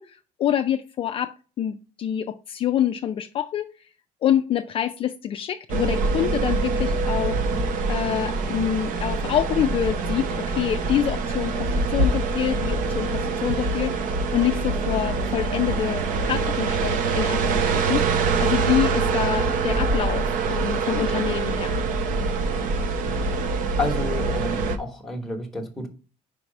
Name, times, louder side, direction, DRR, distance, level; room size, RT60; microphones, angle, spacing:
voice 1, 0.0-3.9 4.2-7.4 7.9-21.8, left 10 dB, 40° left, 7 dB, 0.3 m, -26 dB
sound 1, 5.7-24.8, right 4 dB, 65° right, 0.8 m, -24 dB
voice 2, 23.8-25.9, left 1 dB, ahead, 0 dB, 1.1 m, -30 dB
4.8 x 4.6 x 5.2 m, 0.37 s
cardioid pair, 160°, 15 cm